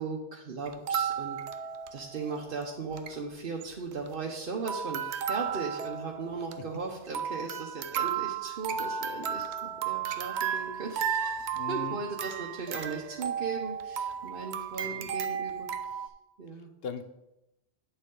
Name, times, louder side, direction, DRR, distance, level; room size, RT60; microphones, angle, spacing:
voice 1, 0.0-1.4 1.9-16.1 16.4-16.7, right 4 dB, 60° right, -1 dB, 1.0 m, -38 dB
sound 1, 0.7-2.3 2.6-2.7 2.9-3.1 3.6-4.4 4.7-16.1, right 8 dB, 90° right, 0.8 m, -34 dB
voice 2, 11.5-12.0 14.8-15.1 16.8-17.0, left 7 dB, 70° left, 9 dB, 0.9 m, -39 dB
9.3 x 6.7 x 3.7 m, 0.93 s
omnidirectional pair, 1.1 m